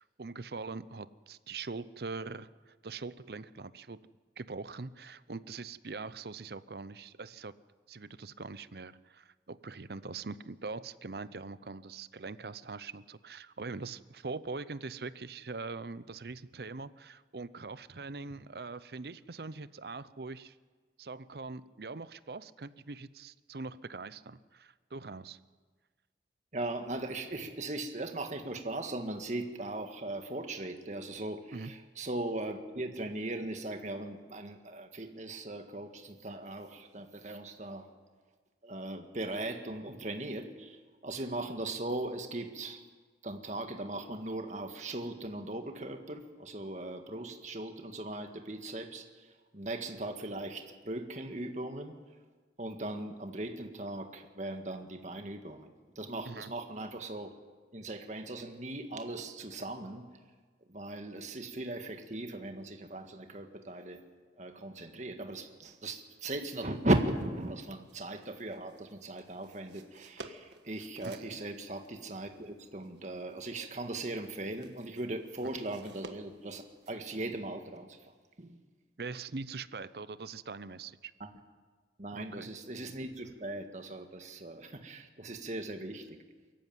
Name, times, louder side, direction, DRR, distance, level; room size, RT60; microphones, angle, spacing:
voice 1, 0.0-4.0 4.4-7.5 7.9-20.6 21.0-25.4 31.5-31.7 56.3-56.5 71.0-71.2 79.0-81.1 82.1-82.5, right 4 dB, 60° right, 16 dB, 0.7 m, -42 dB
voice 2, 26.5-37.9 38.6-42.8 43.2-49.3 49.5-52.0 52.6-57.3 57.7-60.1 60.7-64.0 64.4-78.0 78.4-78.6 82.0-86.2, right 2 dB, 40° right, 5 dB, 1.8 m, -38 dB
sound 1, 66.5-77.0, right 3 dB, 80° right, 1.5 m, -55 dB
23.5 x 14.5 x 9.2 m, 1.4 s
head